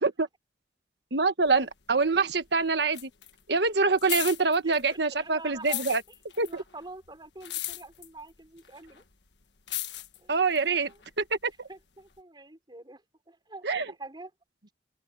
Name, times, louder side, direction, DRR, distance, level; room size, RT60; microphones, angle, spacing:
voice 1, 1.1-3.1 3.5-6.0 6.4-6.5 10.3-10.9 11.2-11.5 13.6-13.9, right 4 dB, 70° right, 1.5 m, -25 dB
sound 1, 1.4-2.5 2.7-5.2 5.5-11.5 12.1-12.2, left 14 dB, 80° left, 1.5 m, -37 dB
voice 2, 4.6-5.9 6.5-9.0 10.2-10.4 10.8-11.0 11.7-14.3, right 2 dB, 25° right, 5.7 m, -46 dB
open air
head